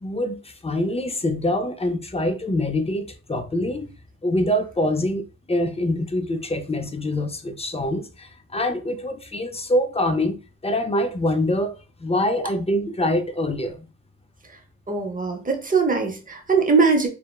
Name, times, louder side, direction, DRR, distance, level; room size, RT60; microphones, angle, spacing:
voice 1, 0.0-3.9 4.2-10.4 10.6-11.7 12.0-13.9, left 1 dB, 20° left, 0.4 m, -25 dB
voice 2, 14.9-17.1, right 4 dB, 30° right, 0.7 m, -21 dB
3.3 x 2.1 x 2.2 m
wide cardioid pair, 65°, 30 cm